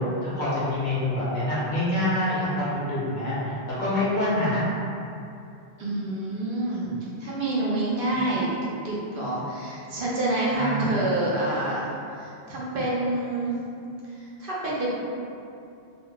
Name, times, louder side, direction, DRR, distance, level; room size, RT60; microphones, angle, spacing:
voice 1, 0.0-3.5 3.8-4.6 8.1-8.2 10.5-11.0, left 1 dB, 50° left, -11 dB, 1.0 m, -26 dB
voice 2, 5.8-6.9 7.2-8.5 8.8-11.8 12.2-13.5 14.4-15.0, right 2 dB, 65° right, -6 dB, 0.8 m, -27 dB
2.4 x 2.1 x 3.7 m, 2.6 s
omnidirectional pair, 1.0 m